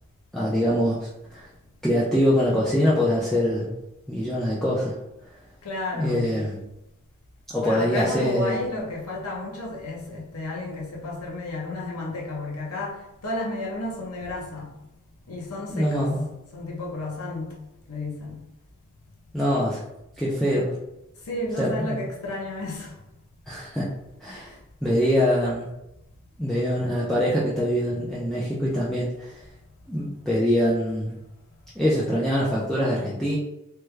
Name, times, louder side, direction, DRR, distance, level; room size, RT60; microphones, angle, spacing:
voice 1, 0.3-1.5 1.8-3.8 4.1-5.0 5.9-6.5 7.5-8.6 15.7-16.3 19.3-19.8 20.2-20.8 21.6-22.0 23.5-23.9 24.2-24.5 24.8-25.7 26.4-29.4 29.9-31.2 31.8-33.4, equal, ahead, 0.4 m, -24 dB
voice 2, 5.6-6.4 7.6-14.7 15.3-16.2 16.5-17.5 17.9-18.4 21.2-23.0 24.3-24.5, left 2 dB, 85° left, 0.8 m, -32 dB
3.3 x 2.2 x 3.2 m
head